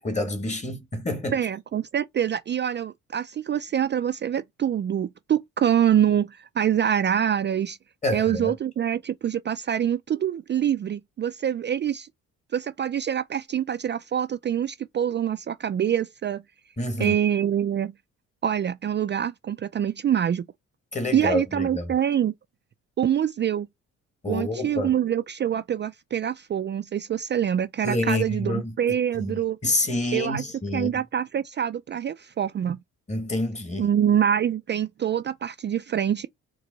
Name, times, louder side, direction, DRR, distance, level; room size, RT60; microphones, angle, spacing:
voice 1, 0.0-1.4 8.0-8.5 16.8-17.2 20.9-21.9 24.2-24.9 27.8-28.7 29.2-31.0 33.1-33.9, left 1 dB, 25° left, 1.4 m, -28 dB
voice 2, 1.3-7.8 8.1-12.1 12.5-16.4 17.0-17.9 18.4-20.5 21.1-22.3 23.0-23.7 24.3-29.6 30.1-30.4 30.7-32.8 33.8-36.3, right 9 dB, 35° right, 0.4 m, -25 dB
4.5 x 2.2 x 3.9 m
cardioid pair, 90°, 30 cm